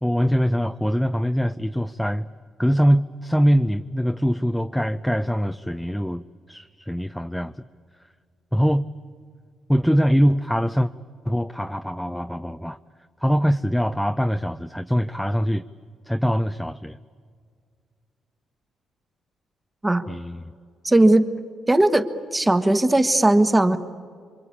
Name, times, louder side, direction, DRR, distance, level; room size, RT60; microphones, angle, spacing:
voice 1, 0.0-2.3 2.6-7.5 8.5-8.8 9.7-10.9 11.2-12.8 13.2-15.6 16.1-17.0 20.1-20.5, equal, ahead, 9 dB, 0.6 m, -23 dB
voice 2, 20.8-21.3 21.7-23.8, right 1 dB, 15° right, 9 dB, 1.5 m, -18 dB
27.5 x 24.0 x 8.6 m, 2.1 s
cardioid pair, 90°, 0 cm